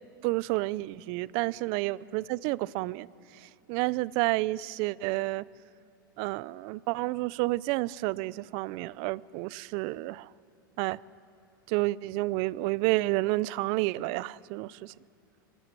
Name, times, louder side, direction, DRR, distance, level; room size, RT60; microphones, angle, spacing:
voice 1, 0.2-3.1 3.3-5.4 6.2-10.3 10.8-11.0 11.7-14.9, right 20 dB, 50° right, 0.6 m, -30 dB
25.0 x 20.0 x 9.1 m
hypercardioid pair, 110°, 12 cm